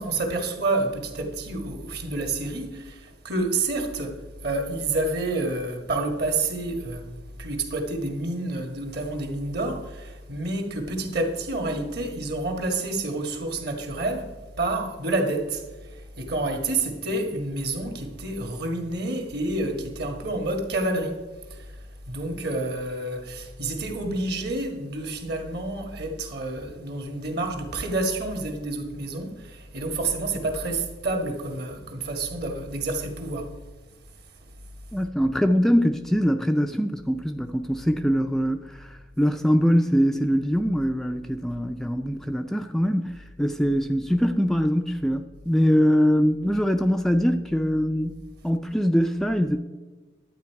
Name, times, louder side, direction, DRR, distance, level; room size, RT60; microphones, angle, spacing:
voice 1, 0.0-4.1 4.4-7.0 7.4-14.3 14.6-21.2 21.5-21.8 22.1-33.5, right 2 dB, 60° right, 1.7 m, -29 dB
voice 2, 34.9-48.2 48.4-49.6, equal, ahead, 0.3 m, -23 dB
11.0 x 8.7 x 4.6 m
head